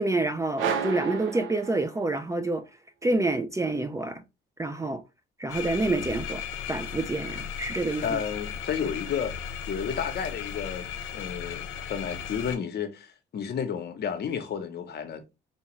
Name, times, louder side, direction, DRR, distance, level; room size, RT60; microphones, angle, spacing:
voice 1, 0.0-2.6 3.0-4.2 4.6-5.0 5.4-6.4 6.7-8.2, right 2 dB, 15° right, 0.4 m, -27 dB
sound 1, 0.6-2.3, right 6 dB, 85° right, 0.7 m, -31 dB
sound 2, 5.5-12.6, left 8 dB, 85° left, 0.6 m, -36 dB
voice 2, 8.0-10.9 11.1-15.2, left 7 dB, 55° left, 0.8 m, -32 dB
4.2 x 2.3 x 3.0 m
cardioid pair, 90°, 20 cm